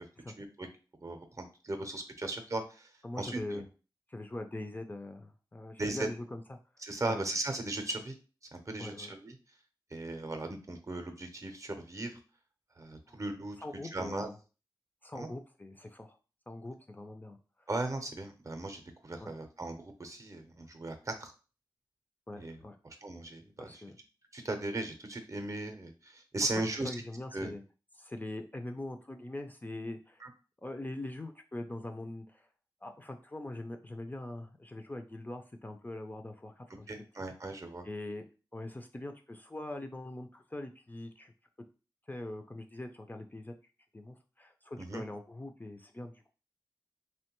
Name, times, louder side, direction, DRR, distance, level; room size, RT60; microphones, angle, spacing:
voice 1, 1.0-2.6 3.2-3.6 5.8-6.1 6.8-8.2 8.5-9.3 9.9-12.1 12.8-13.6 13.9-14.3 15.1-15.3 17.7-21.3 22.4-22.6 22.8-23.7 24.3-26.9 27.3-27.5 30.2-30.3 36.9-37.8 44.8-45.0, right 2 dB, 40° right, 6 dB, 0.5 m, -37 dB
voice 2, 3.0-3.6 4.1-6.6 7.0-7.2 8.8-9.1 13.1-13.2 13.6-14.4 15.0-16.2 16.5-17.7 19.2-19.3 22.3-22.8 23.6-24.0 26.4-27.6 28.0-30.2 30.6-32.5 32.8-36.9 37.8-38.2 38.5-41.3 42.1-43.5 43.9-46.3, left 1 dB, 20° left, 5 dB, 0.3 m, -42 dB
2.9 x 2.2 x 2.9 m, 0.34 s
wide cardioid pair, 60°, 8 cm